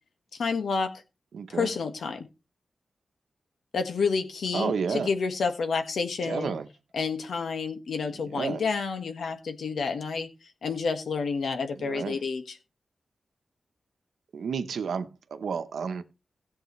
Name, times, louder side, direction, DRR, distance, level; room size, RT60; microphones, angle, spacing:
voice 1, 0.3-1.0 1.5-2.2 3.7-6.5 6.9-10.3 10.6-12.6, left 5 dB, 80° left, 1.6 m, -29 dB
voice 2, 1.3-1.7 4.5-5.1 6.2-6.7 8.2-8.6 11.8-12.2 14.3-16.0, right 6 dB, 90° right, 0.9 m, -31 dB
16.5 x 7.7 x 3.2 m
wide cardioid pair, 155°, 0 cm